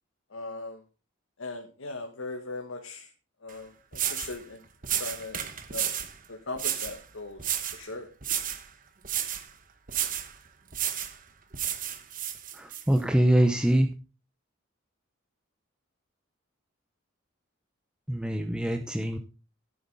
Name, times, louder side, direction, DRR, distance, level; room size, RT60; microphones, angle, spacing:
voice 1, 0.3-0.8 1.4-3.1 3.4-4.6 4.9-5.4 5.7-5.9 6.3-8.1, left 3 dB, 75° left, 3 dB, 1.6 m, -39 dB
sound 1, 3.5-3.6 3.9-4.4 4.8-6.1 6.6-7.0 7.4-7.8 8.2-8.7 9.0-9.5 9.9-10.3 10.7-11.2 11.5-12.8, right 10 dB, 40° right, 1.1 m, -31 dB
voice 2, 12.5-13.9 18.1-19.2, right 1 dB, 5° right, 5 dB, 0.6 m, -24 dB
13.5 x 8.0 x 4.0 m, 0.33 s
head